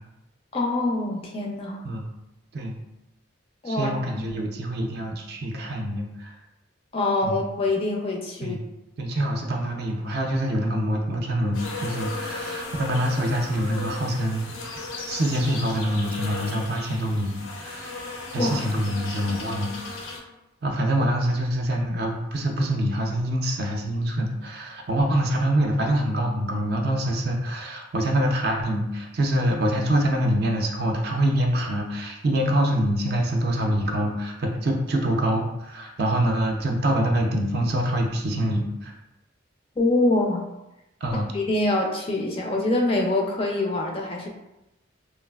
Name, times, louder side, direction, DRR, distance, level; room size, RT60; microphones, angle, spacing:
voice 1, 0.5-1.8 3.6-3.9 4.3-4.4 6.9-8.6 18.4-18.6 39.8-40.5 41.3-44.3, left 2 dB, 30° left, 0 dB, 0.3 m, -24 dB
voice 2, 3.7-6.4 7.2-7.4 8.4-8.6 9.0-14.8 15.1-18.0 18.3-19.7 20.6-38.9 41.0-41.3, right 1 dB, 50° right, 1 dB, 0.4 m, -25 dB
sound 1, 11.5-20.2, left 3 dB, 90° left, 0.6 m, -36 dB
3.1 x 2.4 x 2.2 m, 0.92 s
head